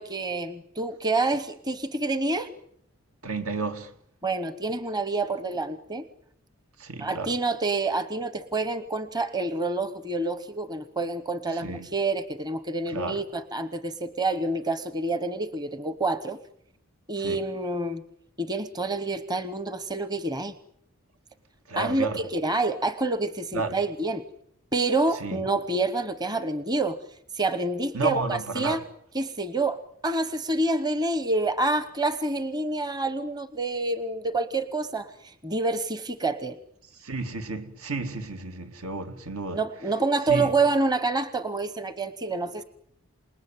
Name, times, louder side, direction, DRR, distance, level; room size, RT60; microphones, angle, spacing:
voice 1, 0.0-2.5 4.2-6.0 7.0-16.4 17.1-18.0 18.4-20.5 21.8-24.2 24.7-27.0 27.3-28.8 29.1-36.6 39.5-42.6, right 2 dB, 20° right, 1.0 m, -27 dB
voice 2, 3.2-3.9 6.8-7.3 11.5-11.9 12.9-13.2 17.2-17.4 21.7-22.2 23.5-23.8 25.2-25.5 27.9-28.8 37.0-39.6 40.3-40.5, right 3 dB, 75° right, 2.4 m, -32 dB
28.0 x 19.5 x 9.1 m
head